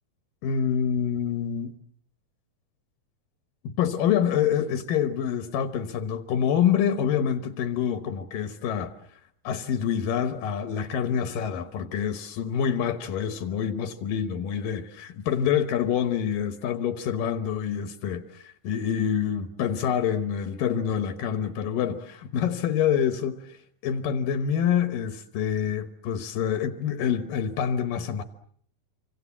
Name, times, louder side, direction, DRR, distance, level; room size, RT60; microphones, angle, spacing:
voice 1, 0.4-1.7 3.6-8.9 9.4-14.8 15.3-23.6 23.8-28.2, left 8 dB, 75° left, 2.9 m, -26 dB
26.5 x 26.0 x 7.3 m
omnidirectional pair, 4.0 m